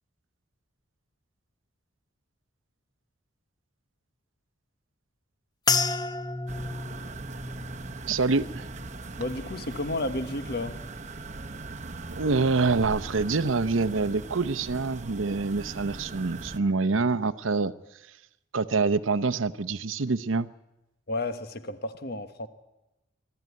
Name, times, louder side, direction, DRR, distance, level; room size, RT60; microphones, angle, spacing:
sound 1, 5.7-10.2 10.5-11.2 11.8-12.0, left 4 dB, 20° left, 0.8 m, -33 dB
sound 2, 6.5-16.6, right 3 dB, 35° right, 0.9 m, -40 dB
voice 1, 8.1-8.7 12.1-17.7 18.5-20.5, right 4 dB, 85° right, 13 dB, 0.8 m, -26 dB
voice 2, 9.2-10.8 21.1-22.5, left 2 dB, 55° left, 10 dB, 1.4 m, -32 dB
23.5 x 13.5 x 9.6 m, 0.95 s
head